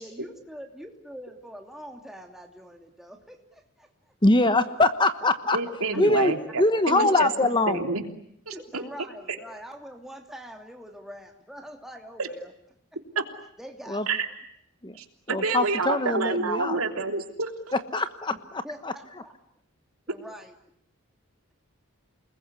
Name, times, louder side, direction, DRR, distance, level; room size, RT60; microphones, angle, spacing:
voice 1, 0.0-4.1 5.9-6.0 8.5-12.5 13.6-14.2 18.3-18.4 18.6-19.4 20.1-20.6, equal, ahead, 3 dB, 2.8 m, -44 dB
voice 2, 4.2-5.6 6.0-6.3 6.6-7.8 13.9-14.1 14.8-15.0 15.3-16.8 17.9-18.3 18.8-18.9, left 2 dB, 20° left, 11 dB, 1.2 m, -23 dB
voice 3, 5.5-7.3 7.7-8.0 8.5-8.8 12.2-12.3 14.1-14.3 15.0-17.5, right 3 dB, 85° right, 5 dB, 3.3 m, -28 dB
29.0 x 21.0 x 9.9 m, 0.72 s
head